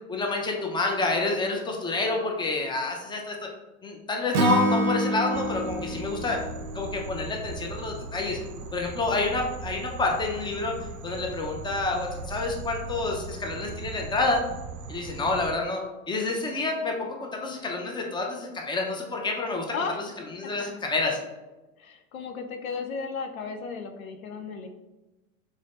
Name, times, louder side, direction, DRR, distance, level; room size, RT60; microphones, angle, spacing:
voice 1, 0.1-3.5 3.8-6.4 6.7-8.4 8.7-10.8 11.0-14.4 14.9-21.2, left 3 dB, 10° left, 1 dB, 0.7 m, -28 dB
Acoustic guitar / Strum, 4.3-7.6, right 1 dB, 90° right, 0.6 m, -27 dB
sound 1, 5.3-15.5, right 3 dB, 35° right, 0.6 m, -39 dB
voice 2, 21.8-24.7, left 5 dB, 80° left, 6 dB, 0.6 m, -34 dB
5.0 x 3.9 x 2.6 m, 1.1 s
hypercardioid pair, 90°, 41 cm